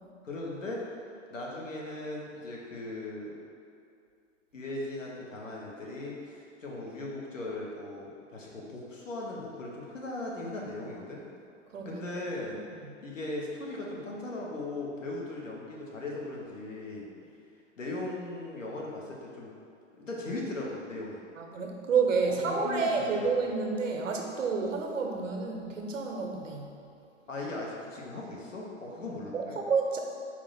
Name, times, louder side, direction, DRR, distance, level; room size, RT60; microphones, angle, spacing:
voice 1, 0.2-0.8 1.3-3.4 4.5-11.2 11.8-12.6 13.0-17.1 17.8-19.5 20.0-21.2 22.2-23.3 27.3-29.6, left 2 dB, 90° left, -3 dB, 0.9 m, -38 dB
voice 2, 21.4-26.7 29.3-30.0, right 4 dB, 85° right, 2 dB, 0.7 m, -29 dB
4.4 x 2.1 x 4.1 m, 2.5 s
hypercardioid pair, 110°, 37 cm